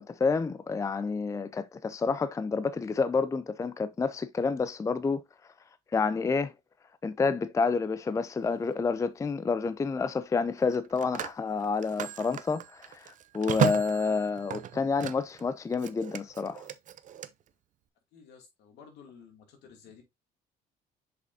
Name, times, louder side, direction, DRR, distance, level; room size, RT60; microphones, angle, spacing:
voice 1, 0.0-5.2 5.9-6.5 7.0-16.6, left 4 dB, 20° left, 0.5 m, -29 dB
Telephone, 8.4-8.6 10.6-15.4 15.7-17.3, right 9 dB, 50° right, 0.6 m, -34 dB
voice 2, 18.1-20.0, left 6 dB, 80° left, 2.6 m, -53 dB
6.7 x 5.1 x 2.7 m
cardioid pair, 110°, 17 cm